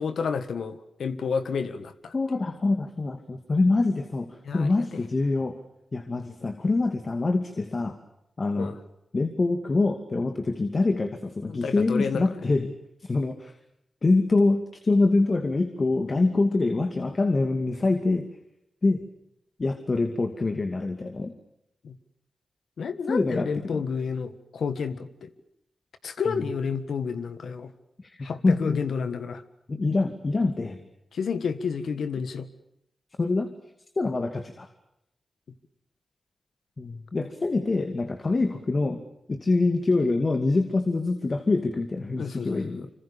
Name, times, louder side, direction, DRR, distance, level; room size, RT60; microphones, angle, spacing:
voice 1, 0.0-2.1 4.4-5.0 8.5-8.8 11.5-12.2 21.8-22.0 22.8-25.3 26.0-27.7 28.2-29.4 31.1-32.5 42.2-42.9, left 5 dB, 80° left, 11 dB, 1.6 m, -30 dB
voice 2, 2.1-5.6 5.9-7.9 8.4-8.7 9.1-12.7 13.0-13.5 14.0-18.2 18.8-19.0 19.6-21.3 23.1-23.8 26.4-26.5 28.0-28.8 29.7-30.8 33.2-33.5 34.0-34.7 36.8-39.0 39.3-42.9, left 3 dB, 50° left, 7 dB, 2.4 m, -25 dB
26.0 x 25.5 x 7.0 m, 0.81 s
cardioid pair, 45°, 0 cm